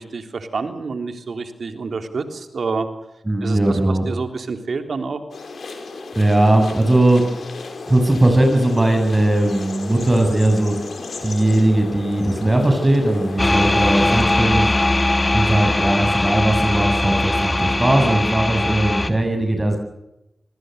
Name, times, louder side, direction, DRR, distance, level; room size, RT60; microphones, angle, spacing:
voice 1, 0.0-2.9 3.4-5.2, right 4 dB, 75° right, 7 dB, 3.6 m, -28 dB
voice 2, 3.3-4.1 6.2-7.2 7.9-10.8 11.2-14.8 15.3-19.8, right 1 dB, 25° right, 4 dB, 7.7 m, -18 dB
sound 1, 5.3-14.2, left 3 dB, 80° left, 5.1 m, -34 dB
sound 2, 13.4-19.1, left 2 dB, 30° left, 2.9 m, -20 dB
28.0 x 21.0 x 6.7 m, 0.86 s
cardioid pair, 45°, 0 cm